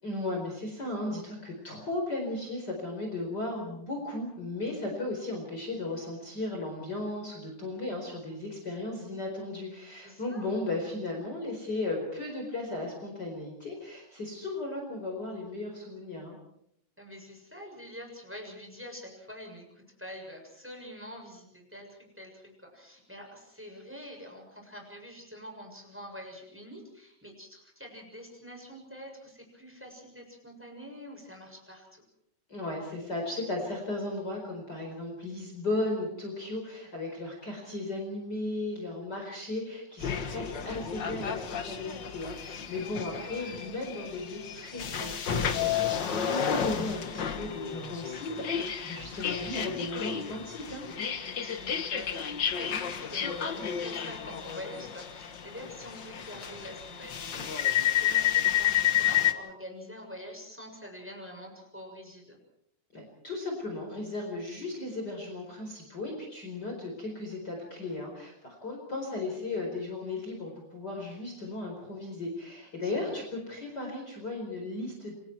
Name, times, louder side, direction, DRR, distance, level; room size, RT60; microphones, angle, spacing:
voice 1, 0.0-16.4 32.5-50.8 62.9-75.1, left 2 dB, 30° left, 1 dB, 5.0 m, -36 dB
voice 2, 10.0-10.5 17.0-32.0 42.3-43.1 51.2-62.4 72.8-73.2, equal, 5° right, 2 dB, 6.8 m, -46 dB
sound 1, 40.0-59.3, left 9 dB, 45° left, 1.5 m, -31 dB
29.0 x 24.5 x 4.7 m, 0.74 s
omnidirectional pair, 3.8 m